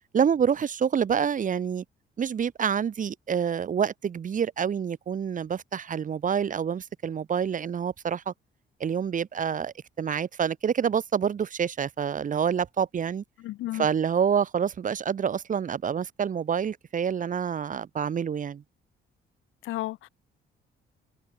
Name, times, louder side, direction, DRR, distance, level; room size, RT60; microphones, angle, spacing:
voice 1, 0.1-1.8 2.2-8.3 8.8-13.2 13.7-18.6, right 7 dB, 40° right, 0.9 m, -27 dB
voice 2, 13.4-13.9 19.6-20.1, left 16 dB, 85° left, 1.0 m, -33 dB
cardioid pair, 90°, 20 cm